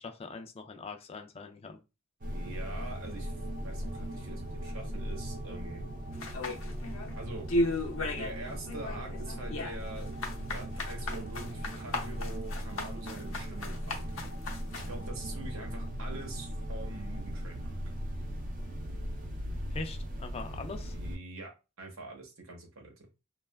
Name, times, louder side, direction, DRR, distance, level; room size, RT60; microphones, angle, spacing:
voice 1, 0.0-1.8 19.7-20.9, left 4 dB, 30° left, 0.3 m, -42 dB
sound 1, 2.2-21.2, equal, 40° right, 0.4 m, -38 dB
voice 2, 2.3-3.3 3.6-5.8 7.1-7.5 8.2-10.1 10.5-14.1 14.7-17.8 20.9-23.1, right 2 dB, 90° right, 0.9 m, -44 dB
sound 2, 6.2-7.1 7.5-8.4 8.7-14.9, left 1 dB, 75° left, 0.6 m, -34 dB
2.8 x 2.2 x 2.2 m
head